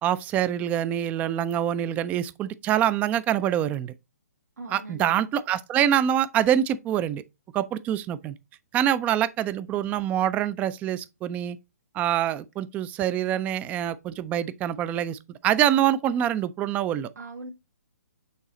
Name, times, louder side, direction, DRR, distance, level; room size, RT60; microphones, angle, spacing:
voice 1, 0.0-3.9 4.7-7.2 7.5-8.3 8.7-11.6 11.9-17.1, right 10 dB, 15° right, 0.4 m, -25 dB
voice 2, 4.6-5.2 17.1-17.5, right 2 dB, 80° right, 1.7 m, -40 dB
6.3 x 4.0 x 4.1 m
hypercardioid pair, 140°, 9 cm